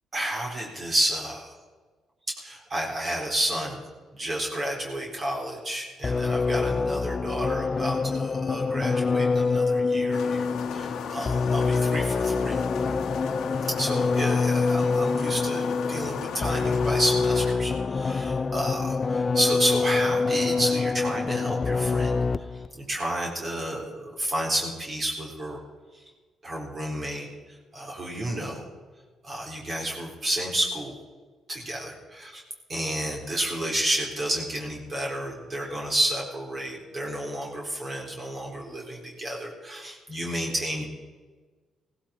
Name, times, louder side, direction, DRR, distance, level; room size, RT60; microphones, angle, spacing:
voice 1, 0.1-1.5 2.4-3.8 4.1-12.6 13.7-25.6 25.9-26.0 26.4-27.3 27.7-28.7 29.2-30.9 31.5-32.4 32.7-40.8, right 1 dB, 40° right, -2 dB, 4.0 m, -31 dB
sound 1, 6.0-22.7, left 4 dB, 35° left, 0.4 m, -26 dB
sound 2, 10.1-17.5, left 7 dB, 75° left, 1.3 m, -35 dB
17.0 x 16.0 x 4.4 m, 1.4 s
cardioid pair, 90°, 0 cm